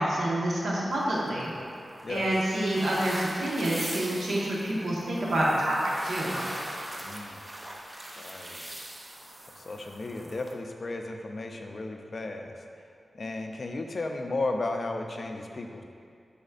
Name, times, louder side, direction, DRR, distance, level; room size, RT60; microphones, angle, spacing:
voice 1, 0.0-1.5 2.1-5.8 6.0-6.4, right 1 dB, 85° right, -6 dB, 1.3 m, -27 dB
sound 1, 0.9-10.5, right 1 dB, 25° right, 0.5 m, -41 dB
voice 2, 7.0-7.4 8.2-8.7 9.6-12.6 13.1-15.8, left 2 dB, 45° left, 3 dB, 0.4 m, -34 dB
10.0 x 4.2 x 2.5 m, 2.4 s
wide cardioid pair, 145°, 0 cm